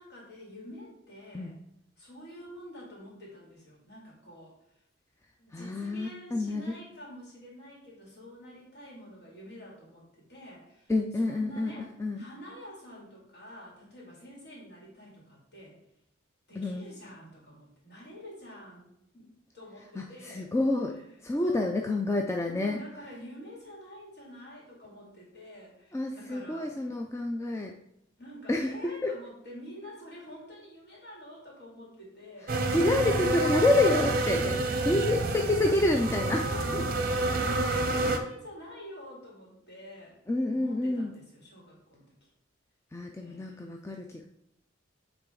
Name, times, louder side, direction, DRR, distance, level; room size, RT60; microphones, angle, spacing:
voice 1, 0.0-1.6 2.0-4.8 5.4-11.9 12.2-15.8 16.5-20.5 20.9-21.7 22.5-27.0 28.2-32.8 34.1-34.9 36.4-37.1 37.4-40.2 40.5-42.1 43.2-43.7, equal, 55° left, -4 dB, 2.6 m, -48 dB
voice 2, 5.5-6.6 10.9-11.7 12.0-12.2 16.6-16.8 20.0-21.0 21.2-22.8 25.9-27.7 28.5-28.8 29.0-29.1 32.7-36.4 36.7-36.8 40.3-41.1 42.9-44.3, left 2 dB, 15° left, 2 dB, 0.3 m, -28 dB
sound 1, 32.5-38.2, right 2 dB, 50° right, 0.7 m, -28 dB
8.8 x 3.5 x 3.8 m, 0.80 s
head